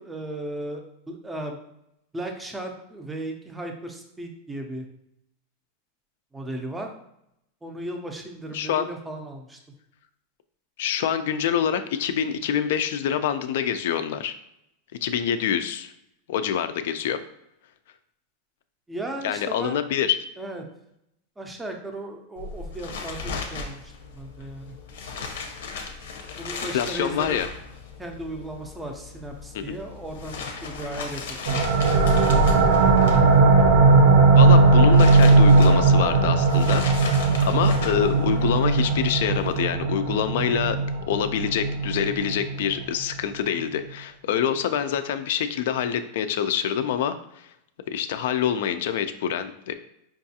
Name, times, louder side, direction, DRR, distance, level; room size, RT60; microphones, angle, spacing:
voice 1, 0.0-1.6 2.1-4.9 6.3-6.9 7.6-9.6 18.9-19.8 20.4-20.6 21.4-24.8 26.4-27.4 28.0-32.7, right 1 dB, 5° right, 3 dB, 0.4 m, -36 dB
voice 2, 8.5-8.9 10.8-14.4 15.0-15.9 16.3-17.2 19.2-20.2 26.7-27.5 29.5-29.6 34.4-37.2 37.5-40.8 41.1-47.1 47.9-49.7, left 9 dB, 65° left, 10 dB, 0.3 m, -26 dB
sound 1, 22.4-39.6, left 5 dB, 85° left, 0.7 m, -37 dB
sound 2, 31.5-42.8, right 3 dB, 80° right, 0.7 m, -18 dB
5.2 x 2.4 x 2.7 m, 0.80 s
supercardioid pair, 165°, 0 cm